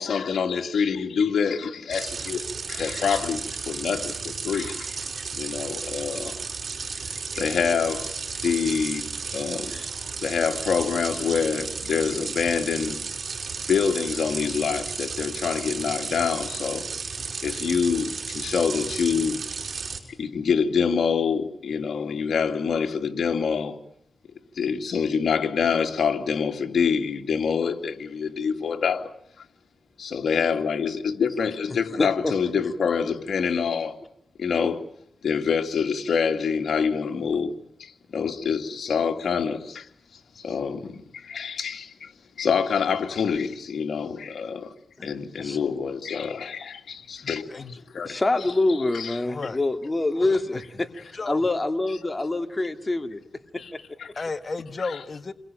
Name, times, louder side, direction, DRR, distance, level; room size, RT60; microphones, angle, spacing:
voice 1, 0.0-6.4 7.3-9.0 9.3-9.7 10.2-13.0 13.7-16.9 17.4-19.4 20.2-23.8 24.6-29.1 30.0-34.0 34.4-34.8 35.2-37.5 37.8-39.9 40.4-42.1 42.4-44.7 45.0-47.4 47.9-48.2 48.9-49.2 53.6-53.7 54.0-54.1 54.8-54.9, left 6 dB, 80° left, 2.5 m, -26 dB
sound 1, 1.9-20.0, right 5 dB, 65° right, 5.7 m, -33 dB
voice 2, 32.0-32.3 45.0-45.1 45.4-45.6 48.0-53.2 53.5-53.8, left 2 dB, 30° left, 2.4 m, -26 dB
voice 3, 47.2-47.8 49.3-49.6 50.5-50.6 51.1-51.4 54.2-55.3, left 4 dB, 45° left, 1.6 m, -33 dB
29.0 x 22.5 x 9.1 m
cardioid pair, 70°, 0 cm